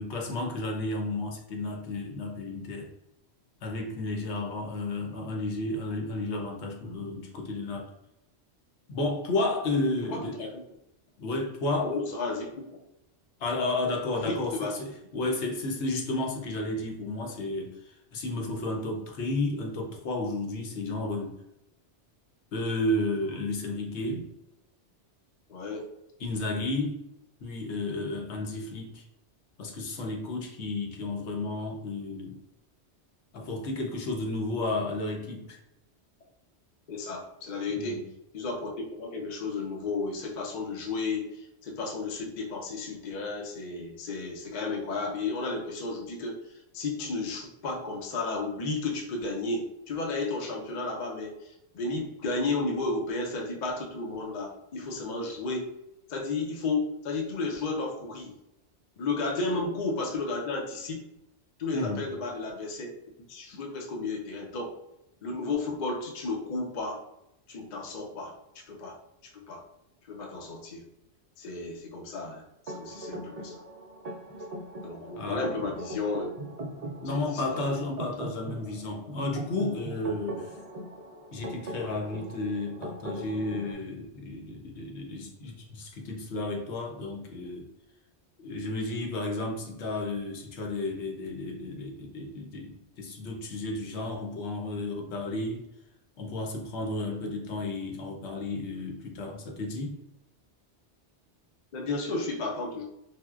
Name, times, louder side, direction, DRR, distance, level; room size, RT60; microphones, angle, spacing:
voice 1, 0.0-2.9 3.6-7.9 8.9-10.4 11.2-11.9 13.4-21.4 22.5-24.3 26.2-27.0 27.4-29.0 29.6-32.4 33.3-35.6 37.7-38.1 61.7-62.1 75.2-75.7 77.0-80.6 81.3-87.7 88.4-95.6 96.2-100.0, left 2 dB, 75° left, 1 dB, 0.9 m, -32 dB
voice 2, 10.1-10.6 11.8-12.5 14.2-14.8 25.5-25.9 36.9-38.0 38.3-46.4 46.7-55.7 56.1-58.3 59.0-61.0 61.6-62.9 63.3-64.8 65.2-67.0 67.5-69.0 69.3-69.7 70.1-70.8 71.4-73.6 74.8-76.3 77.1-77.6 81.8-81.9 101.7-102.8, left 3 dB, 50° left, 0 dB, 0.6 m, -33 dB
sound 1, 72.7-83.7, right 1 dB, 55° right, 0.4 m, -40 dB
4.3 x 2.0 x 2.3 m, 0.85 s
omnidirectional pair, 1.2 m